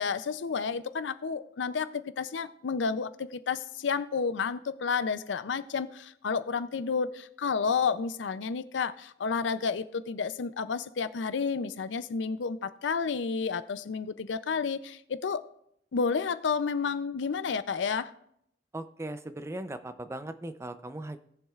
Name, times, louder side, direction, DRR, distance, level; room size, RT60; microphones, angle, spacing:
voice 1, 0.0-15.4 15.9-18.1, left 5 dB, 80° left, 0.5 m, -31 dB
voice 2, 18.7-21.2, right 1 dB, 15° right, 0.5 m, -38 dB
18.0 x 7.2 x 2.4 m
head